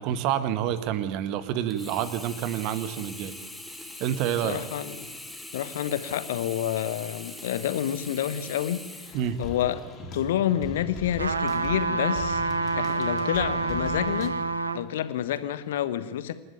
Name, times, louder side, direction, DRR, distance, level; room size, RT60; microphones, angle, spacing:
voice 1, 0.0-3.3 4.0-4.6 9.1-9.4, right 10 dB, 40° right, 12 dB, 1.7 m, -28 dB
Sink (filling or washing), 1.7-9.9 10.5-10.6, left 1 dB, 5° left, 2.0 m, -42 dB
voice 2, 4.4-5.1 5.5-9.8 10.1-12.5 12.7-14.4 14.7-16.3, left 11 dB, 55° left, 13 dB, 1.4 m, -29 dB
sound 1, 9.1-14.3, left 2 dB, 30° left, 3.9 m, -39 dB
sound 2, 11.2-14.8 15.4-15.5, right 3 dB, 75° right, 1.0 m, -27 dB
27.5 x 11.5 x 9.3 m, 1.2 s
figure-of-eight pair, 90°, 0 cm